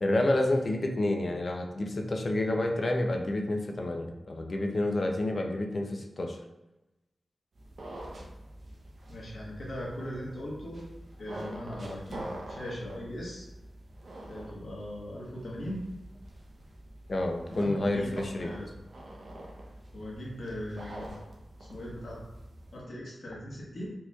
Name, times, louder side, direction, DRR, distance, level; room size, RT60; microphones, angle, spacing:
voice 1, 0.0-6.4 17.1-18.5, left 1 dB, 45° left, 2 dB, 0.4 m, -29 dB
sound 1, 7.5-22.8, right 1 dB, 65° right, 0.7 m, -45 dB
voice 2, 9.1-10.8 11.2-13.5 14.3-15.8 17.5-18.7 19.9-21.1 21.7-22.2 22.7-23.9, equal, 65° left, -4 dB, 1.1 m, -39 dB
4.3 x 2.9 x 2.3 m, 0.99 s
wide cardioid pair, 110°, 0 cm